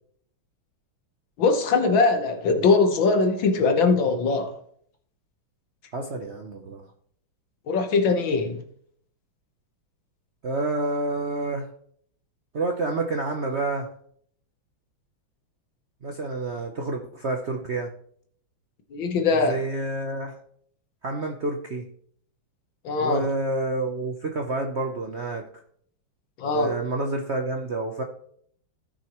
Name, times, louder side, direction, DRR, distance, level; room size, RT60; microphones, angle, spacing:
voice 1, 1.4-4.6 7.7-8.6 18.9-19.6 22.8-23.3 26.4-26.7, left 4 dB, 70° left, 5 dB, 1.8 m, -21 dB
voice 2, 5.9-6.9 10.4-11.7 12.5-13.9 16.0-17.9 19.5-20.4 21.0-21.9 23.0-25.5 26.5-28.0, right 2 dB, 65° right, 3 dB, 0.6 m, -28 dB
16.0 x 6.3 x 3.0 m, 0.62 s
omnidirectional pair, 2.3 m